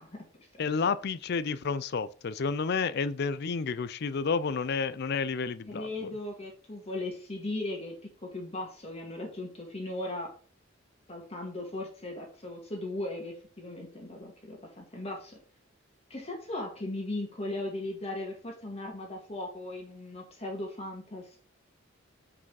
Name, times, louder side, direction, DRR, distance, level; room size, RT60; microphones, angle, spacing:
voice 1, 0.0-0.6 5.7-10.3 11.1-15.4 16.1-21.4, left 2 dB, 30° left, 1.7 m, -38 dB
voice 2, 0.6-5.9, left 5 dB, 50° left, 0.4 m, -30 dB
5.8 x 4.9 x 4.7 m
head